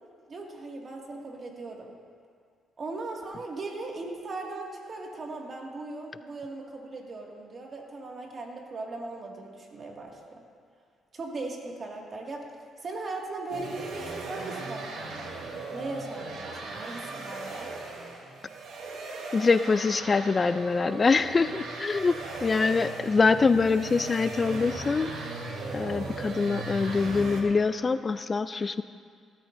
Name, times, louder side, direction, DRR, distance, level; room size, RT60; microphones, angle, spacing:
voice 1, 0.3-1.9 2.8-10.4 11.1-12.5 12.8-17.7, right 2 dB, 45° right, 0 dB, 2.1 m, -38 dB
sound 1, 13.5-27.4, right 3 dB, 75° right, 1.9 m, -38 dB
voice 2, 19.3-25.1 25.7-28.8, left 4 dB, 35° left, 12 dB, 0.3 m, -24 dB
17.5 x 12.5 x 2.6 m, 2.1 s
cardioid pair, 90°, 0 cm